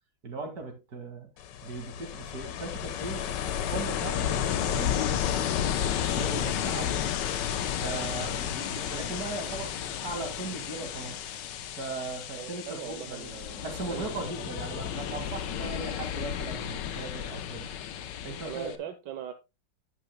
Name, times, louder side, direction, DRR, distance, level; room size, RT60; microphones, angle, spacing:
voice 1, 0.2-1.3 1.6-7.0 7.8-11.2 11.8-13.3 13.6-17.7 18.2-18.8, right 3 dB, 60° right, 2.6 m, -38 dB
Ocean, 1.4-18.8, left 10 dB, 80° left, 1.5 m, -32 dB
voice 2, 12.4-14.8 15.4-15.5 18.4-19.3, right 10 dB, 80° right, 1.5 m, -41 dB
11.0 x 9.0 x 2.2 m
omnidirectional pair, 1.9 m